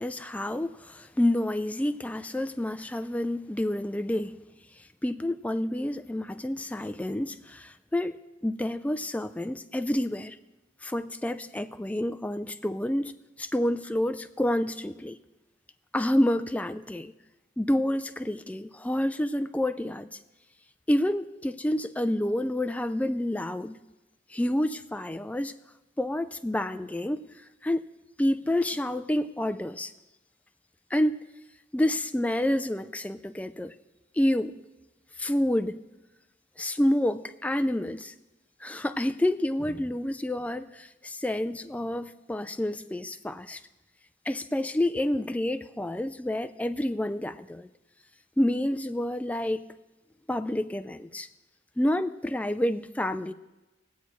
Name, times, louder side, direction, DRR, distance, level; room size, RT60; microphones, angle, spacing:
voice 1, 0.0-4.4 5.0-8.2 8.4-10.4 10.8-13.1 13.4-15.2 15.9-17.1 17.6-20.1 20.9-23.8 24.3-25.5 26.0-27.3 27.6-27.9 28.2-29.9 30.9-31.2 31.7-33.7 34.2-34.5 35.2-35.8 36.6-38.1 38.6-43.6 44.3-47.7 48.4-49.7 50.3-51.3 51.8-53.3, left 1 dB, 10° left, 9 dB, 0.3 m, -28 dB
22.0 x 8.3 x 3.1 m, 1.0 s
head